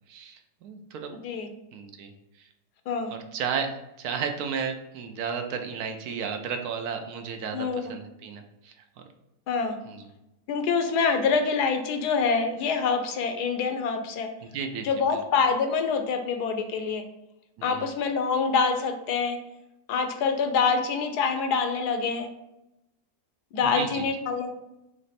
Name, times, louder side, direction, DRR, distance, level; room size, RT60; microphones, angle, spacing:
voice 1, 0.1-1.1 1.7-2.1 3.1-3.7 4.0-8.7 9.9-10.0 14.4-14.9 17.6-17.9 23.6-24.1, right 6 dB, 75° right, 5 dB, 1.1 m, -33 dB
voice 2, 9.5-9.8 10.5-14.3 14.8-17.0 17.6-19.4 19.9-22.3 23.5-24.5, left 5 dB, 80° left, 6 dB, 1.2 m, -25 dB
4.0 x 3.2 x 4.1 m, 0.88 s
omnidirectional pair, 1.7 m